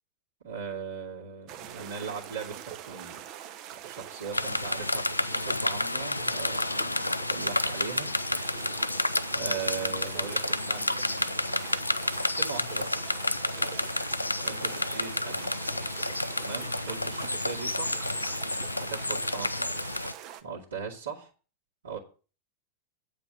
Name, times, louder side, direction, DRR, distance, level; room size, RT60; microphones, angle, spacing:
voice 1, 0.4-3.3 3.8-5.1 5.4-8.1 9.3-11.7 12.3-13.1 14.4-15.5 16.4-18.0 18.8-19.8 20.4-21.3 21.8-22.0, right 5 dB, 70° right, -6 dB, 2.3 m, -39 dB
sound 1, 1.5-20.4, right 11 dB, 40° right, 0.9 m, -43 dB
sound 2, 4.3-20.1, left 2 dB, 85° left, 0.4 m, -30 dB
9.0 x 5.1 x 7.1 m, 0.36 s
figure-of-eight pair, 90°, 0 cm